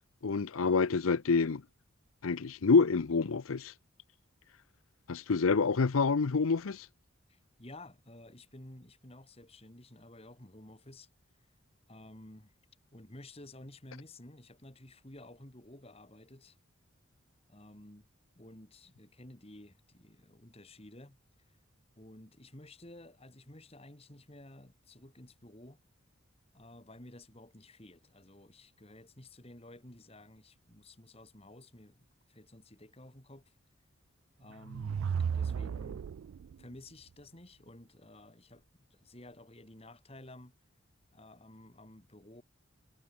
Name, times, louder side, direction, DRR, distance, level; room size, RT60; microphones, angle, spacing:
voice 1, 0.2-1.6 2.2-3.7 5.1-6.8, left 4 dB, 85° left, 0.6 m, -27 dB
voice 2, 7.3-11.1 11.9-12.5 12.9-16.6 17.5-18.1 18.3-21.2 21.5-21.6 22.0-25.8 26.5-33.6 34.4-35.0 35.3-36.1 36.6-40.6 41.1-42.4, left 1 dB, 30° left, 2.6 m, -53 dB
sound 1, 34.5-36.5, right 7 dB, 80° right, 0.3 m, -34 dB
head